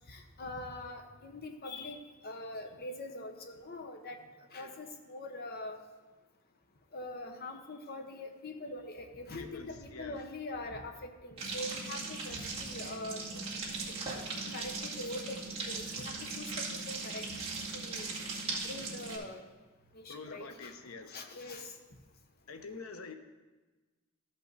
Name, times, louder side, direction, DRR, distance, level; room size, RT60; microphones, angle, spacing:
voice 1, 0.1-4.2 4.5-5.8 6.9-13.5 13.8-13.9 14.3-17.3 17.7-18.2 18.6-19.4 19.9-20.7 21.1-21.7, left 2 dB, 50° left, 4 dB, 1.0 m, -43 dB
voice 2, 9.4-10.2 20.1-21.3 22.5-23.1, left 4 dB, 90° left, 7 dB, 0.8 m, -46 dB
sound 1, 11.4-19.2, right 3 dB, 30° right, 2.1 m, -39 dB
14.0 x 5.4 x 4.1 m, 1.2 s
head